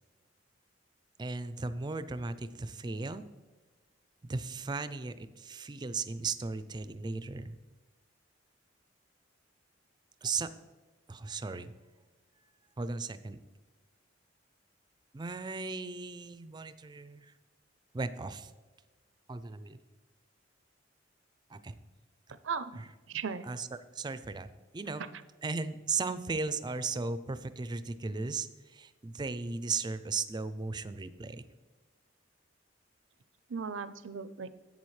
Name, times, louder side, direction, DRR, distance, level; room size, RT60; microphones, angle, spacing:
voice 1, 1.2-3.2 4.2-7.6 10.2-10.5 11.1-11.7 12.8-13.4 15.1-17.3 17.9-18.5 19.3-19.8 21.5-21.7 22.8-22.9 23.5-23.7 23.9-25.0 25.4-31.4, right 4 dB, 25° right, 13 dB, 0.4 m, -36 dB
voice 2, 22.3-22.8 23.1-23.5 25.0-25.1 33.5-34.5, right 5 dB, 85° right, 14 dB, 0.5 m, -37 dB
11.5 x 8.0 x 3.2 m, 1.3 s
head